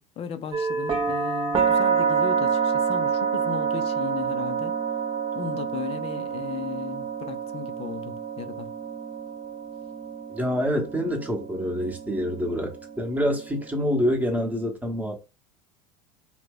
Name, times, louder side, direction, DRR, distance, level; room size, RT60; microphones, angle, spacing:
voice 1, 0.0-4.8 5.3-8.7, left 9 dB, 30° left, 0.5 m, -36 dB
sound 1, 0.5-14.4, right 6 dB, 25° right, 0.6 m, -28 dB
voice 2, 10.3-15.2, equal, 10° right, 0.9 m, -26 dB
2.7 x 2.2 x 3.6 m
figure-of-eight pair, 80°, 19 cm